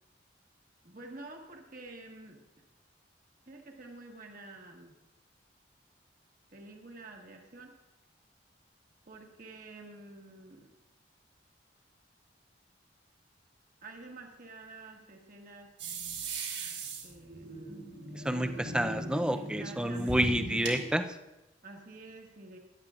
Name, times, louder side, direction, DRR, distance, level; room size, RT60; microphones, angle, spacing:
voice 1, 0.8-2.4 3.5-5.0 6.5-7.7 9.0-10.7 13.8-15.7 17.0-17.9 19.3-20.3 21.6-22.6, right 2 dB, 50° right, 1 dB, 1.4 m, -49 dB
sound 1, 15.8-20.8, right 3 dB, 70° right, 2.5 m, -39 dB
voice 2, 18.2-21.0, right 1 dB, 5° right, 7 dB, 0.5 m, -29 dB
16.5 x 11.0 x 2.4 m, 0.97 s
head